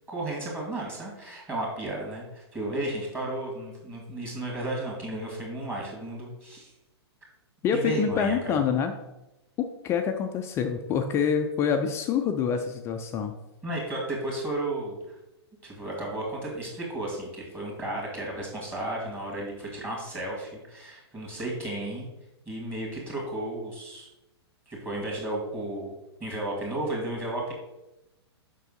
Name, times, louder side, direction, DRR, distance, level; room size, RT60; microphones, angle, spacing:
voice 1, 0.1-6.7 7.7-8.6 13.6-15.2 15.6-22.1 22.5-24.1 24.7-25.9 26.2-27.5, right 1 dB, 15° right, -3 dB, 2.1 m, -33 dB
voice 2, 7.6-8.9 9.6-13.3, left 7 dB, 20° left, 6 dB, 0.4 m, -26 dB
6.7 x 5.4 x 3.9 m, 0.95 s
figure-of-eight pair, 115°, 14 cm